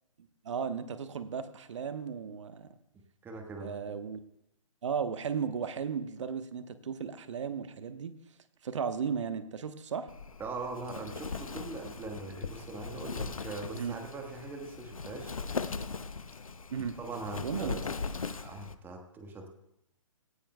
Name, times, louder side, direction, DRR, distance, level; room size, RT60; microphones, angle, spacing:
voice 1, 0.4-2.7 3.6-4.2 4.8-8.1 8.6-10.1 13.7-14.0 16.7-17.0 17.4-17.8, right 6 dB, 60° right, 10 dB, 1.0 m, -35 dB
voice 2, 3.2-3.7 10.4-15.3 17.0-18.0 18.4-19.5, right 3 dB, 10° right, 4 dB, 1.4 m, -41 dB
Wind, 10.1-18.8, left 4 dB, 85° left, 0.7 m, -39 dB
17.5 x 14.0 x 2.2 m, 0.82 s
figure-of-eight pair, 135°, 17 cm